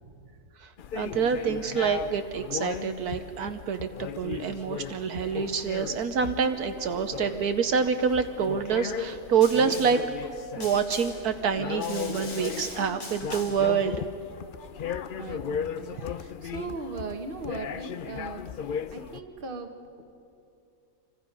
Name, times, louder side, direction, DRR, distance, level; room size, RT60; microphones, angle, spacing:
voice 1, 0.0-0.4 15.1-19.7, right 4 dB, 35° right, 5 dB, 1.4 m, -39 dB
voice 2, 0.6-10.0 10.6-14.0, right 6 dB, 75° right, 8 dB, 1.4 m, -27 dB
sound 1, 0.8-19.2, left 8 dB, 80° left, 0.4 m, -37 dB
Snare drum, 9.4-10.1 10.6-11.3 11.8-13.7, left 3 dB, 40° left, 2.1 m, -41 dB
27.5 x 25.5 x 5.4 m, 2.6 s
omnidirectional pair, 1.7 m